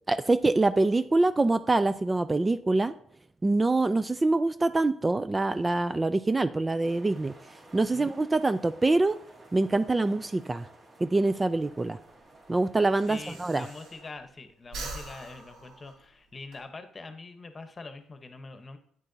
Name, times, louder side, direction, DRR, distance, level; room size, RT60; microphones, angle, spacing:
voice 1, 0.1-2.9 3.4-7.3 7.7-9.2 9.5-10.7 11.0-12.0 12.5-13.6, right 2 dB, 20° right, 12 dB, 0.3 m, -25 dB
sound 1, 6.8-14.1, right 2 dB, 45° right, 2.3 m, -54 dB
Breathing, 11.7-14.3 14.6-16.6, right 2 dB, 85° right, 1.5 m, -43 dB
voice 2, 13.1-18.8, left 3 dB, 30° left, 8 dB, 1.0 m, -44 dB
8.7 x 8.2 x 2.7 m, 0.65 s
cardioid pair, 90°, 0 cm